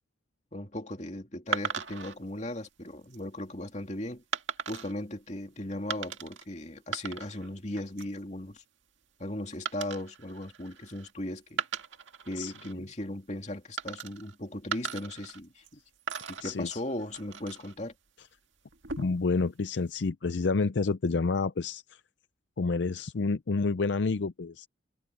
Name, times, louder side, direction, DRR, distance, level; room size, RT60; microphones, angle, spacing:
voice 1, 0.5-4.2 4.7-8.6 9.2-11.6 12.3-15.8 16.3-17.9, left 1 dB, 35° left, 2.7 m, -37 dB
sound 1, 1.5-2.2 2.9-3.2 4.3-4.9 5.9-6.4 6.8-7.5 7.8-8.2 9.7-11.1 11.5-12.7 13.8-14.3 14.7-15.7 16.1-17.7 18.7-19.3, right 6 dB, 85° right, 2.0 m, -37 dB
voice 2, 19.0-21.8 22.6-24.7, left 4 dB, 70° left, 0.5 m, -28 dB
head